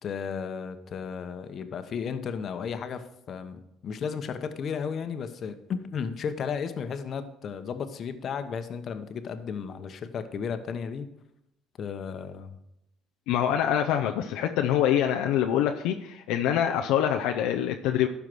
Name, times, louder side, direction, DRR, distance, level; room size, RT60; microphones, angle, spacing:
voice 1, 0.0-11.1 11.8-12.6, left 6 dB, 50° left, 9 dB, 1.0 m, -34 dB
voice 2, 13.3-18.1, left 10 dB, 75° left, 4 dB, 0.6 m, -25 dB
12.5 x 4.9 x 6.1 m, 0.83 s
supercardioid pair, 75°, 0 cm